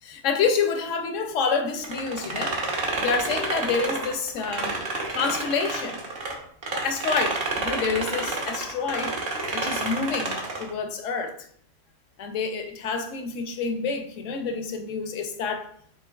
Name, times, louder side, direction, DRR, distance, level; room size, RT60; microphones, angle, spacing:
voice 1, 0.0-4.8 5.1-6.0 6.7-9.2 9.5-11.5 12.2-15.7, left 5 dB, 80° left, 1.0 m, -28 dB
sound 1, 1.8-6.3 6.6-10.7, right 2 dB, 55° right, 1.1 m, -29 dB
7.5 x 3.0 x 2.3 m
omnidirectional pair, 1.3 m